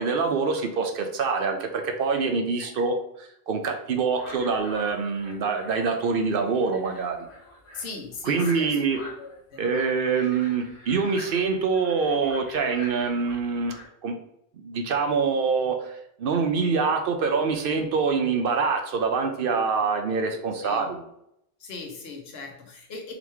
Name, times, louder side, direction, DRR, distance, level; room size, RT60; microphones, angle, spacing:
voice 1, 0.0-7.3 8.2-9.0 9.6-13.7 14.0-14.2 14.6-21.0, right 5 dB, 65° right, 5 dB, 0.7 m, -25 dB
sound 1, 4.1-13.8, left 2 dB, 30° left, 0.9 m, -45 dB
voice 2, 7.7-9.6 20.6-20.9 21.6-23.1, left 4 dB, 75° left, 2 dB, 1.1 m, -39 dB
3.9 x 3.4 x 3.0 m, 0.77 s
omnidirectional pair, 1.1 m